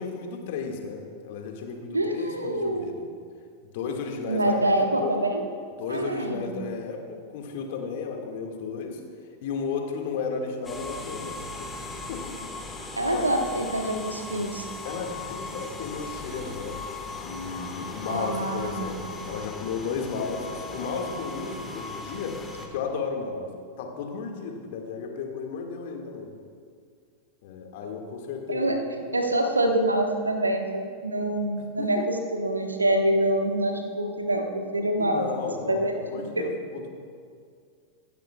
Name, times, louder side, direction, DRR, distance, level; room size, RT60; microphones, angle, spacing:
voice 1, 0.0-3.1 3.6-5.2 5.8-9.0 9.4-11.8 12.1-12.4 13.1-13.3 14.8-16.8 17.2-23.5 23.8-26.3 27.4-29.0 31.6-32.1 34.8-36.9, left 5 dB, 50° left, 2 dB, 2.0 m, -34 dB
voice 2, 1.9-2.9 4.3-5.4 5.9-6.5 13.0-14.6 18.1-19.3 28.5-28.8 29.1-35.2 35.6-36.5, right 1 dB, 80° right, 4 dB, 1.3 m, -26 dB
sound 1, 10.6-22.7, left 3 dB, 10° left, 1.8 m, -38 dB
25.0 x 12.0 x 2.4 m, 2.2 s
figure-of-eight pair, 90°, 0 cm